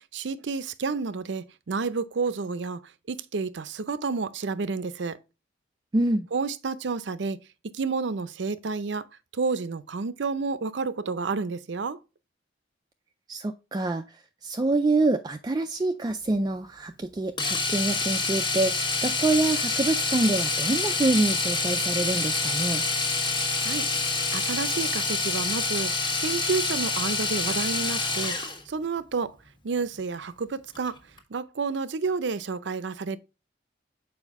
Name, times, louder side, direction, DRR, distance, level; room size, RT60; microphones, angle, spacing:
voice 1, 0.1-2.8 3.1-5.2 6.3-7.4 7.7-9.1 9.3-12.0 23.6-23.9 24.3-28.4 28.7-29.3 29.6-31.0 31.3-33.2, right 4 dB, 70° right, 0.5 m, -30 dB
voice 2, 5.9-6.3 13.3-22.9, right 2 dB, 20° right, 0.3 m, -26 dB
Domestic sounds home sounds, 17.4-28.6 30.7-30.9 31.2-31.3, left 3 dB, 25° left, 1.3 m, -27 dB
7.2 x 4.9 x 3.5 m
head